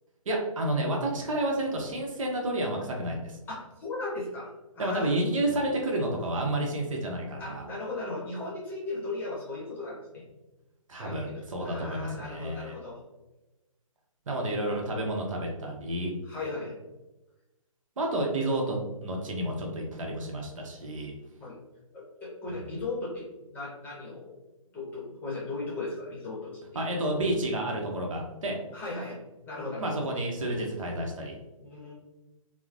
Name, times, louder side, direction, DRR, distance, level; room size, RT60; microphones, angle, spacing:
voice 1, 0.3-3.4 4.8-7.7 10.9-12.7 14.3-16.1 18.0-21.1 22.5-22.7 26.7-28.6 29.8-31.3, right 1 dB, 65° right, 0 dB, 0.7 m, -30 dB
voice 2, 3.5-4.5 4.7-5.1 7.4-10.2 10.9-13.0 16.2-16.7 21.4-21.6 21.9-23.2 23.5-24.3 24.7-26.5 28.7-29.2 29.4-30.0 31.6-31.9, left 2 dB, 10° left, -7 dB, 0.8 m, -37 dB
3.0 x 2.0 x 2.4 m, 1.0 s
hypercardioid pair, 145°, 18 cm